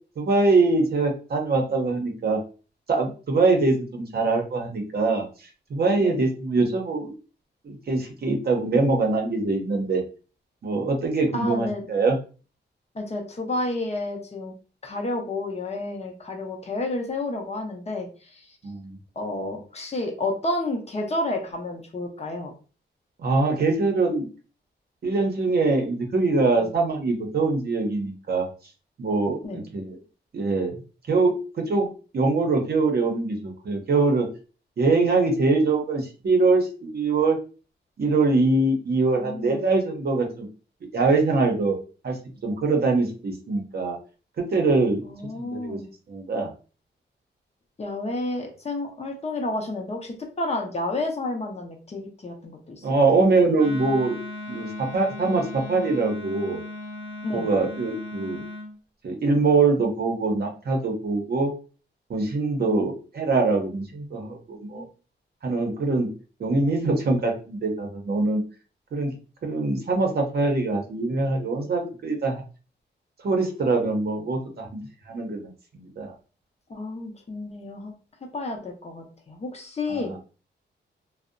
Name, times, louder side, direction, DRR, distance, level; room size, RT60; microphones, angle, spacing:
voice 1, 0.2-2.4 2.9-5.2 5.7-7.1 7.6-10.0 10.6-12.2 18.6-19.0 23.2-24.3 25.0-28.5 29.0-30.0 30.3-30.8 31.1-34.3 34.8-37.4 38.0-40.5 40.9-41.8 42.0-44.0 44.4-45.0 45.4-45.8 46.1-46.5 52.8-54.2 54.5-56.6 57.3-58.4 59.0-61.5 62.1-64.9 65.4-66.1 66.4-68.4 68.9-69.1 69.4-72.4 73.2-74.8 75.1-76.1 79.9-80.2, right 3 dB, 55° right, 2 dB, 0.7 m, -23 dB
voice 2, 11.3-11.9 12.9-14.5 14.8-18.6 19.2-22.5 26.6-26.7 29.4-29.6 39.2-39.6 45.0-45.9 47.8-52.9 57.2-57.5 62.6-62.9 76.7-77.9 78.3-80.2, left 2 dB, 35° left, 1 dB, 0.6 m, -31 dB
Wind instrument woodwind instrument, 53.6-58.7, left 1 dB, 50° left, 0.9 m, -37 dB
2.6 x 2.0 x 2.4 m, 0.36 s
wide cardioid pair, 125°, 19 cm